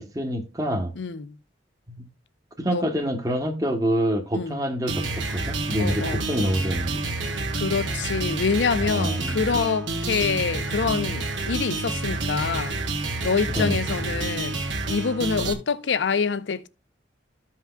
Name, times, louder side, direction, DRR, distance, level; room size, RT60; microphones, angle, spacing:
voice 1, 0.0-0.9 2.6-7.1 8.8-9.4 13.5-13.7, equal, 20° right, 1.0 m, -26 dB
voice 2, 1.0-1.4 2.7-2.9 4.3-4.6 5.8-6.2 7.5-12.8 13.2-14.6 14.9-16.7, left 5 dB, 70° left, 0.5 m, -26 dB
sound 1, 4.9-15.5, right 2 dB, 85° right, 1.4 m, -29 dB
13.5 x 5.8 x 2.2 m
head